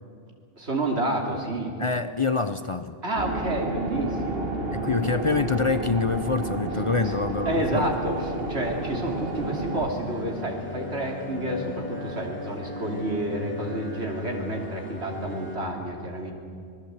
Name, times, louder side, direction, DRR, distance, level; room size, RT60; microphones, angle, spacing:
voice 1, 0.6-1.7 3.0-4.5 7.0-7.2 7.4-16.3, right 1 dB, 85° right, 1 dB, 3.3 m, -29 dB
voice 2, 1.8-3.0 4.7-7.9, left 4 dB, 35° left, 11 dB, 0.6 m, -26 dB
sound 1, 3.2-9.9, right 2 dB, 65° right, 2.2 m, -31 dB
sound 2, 7.3-15.6, left 2 dB, 10° left, 3.2 m, -39 dB
26.5 x 19.5 x 8.1 m, 2.4 s
omnidirectional pair, 1.1 m